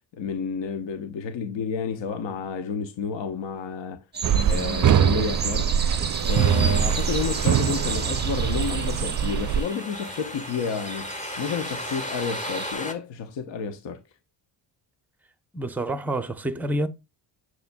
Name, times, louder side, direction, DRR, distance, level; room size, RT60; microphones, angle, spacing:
voice 1, 0.1-4.0 4.5-5.7 6.2-11.1 11.4-14.0, left 6 dB, 70° left, 1.0 m, -30 dB
sound 1, 4.1-12.7, right 4 dB, 20° right, 1.1 m, -34 dB
sound 2, 4.2-9.6, right 9 dB, 40° right, 0.5 m, -23 dB
sound 3, 6.3-12.9, left 1 dB, 15° left, 1.2 m, -36 dB
voice 2, 15.5-16.9, right 1 dB, 5° right, 0.7 m, -28 dB
6.9 x 6.8 x 2.2 m
cardioid pair, 80°, 46 cm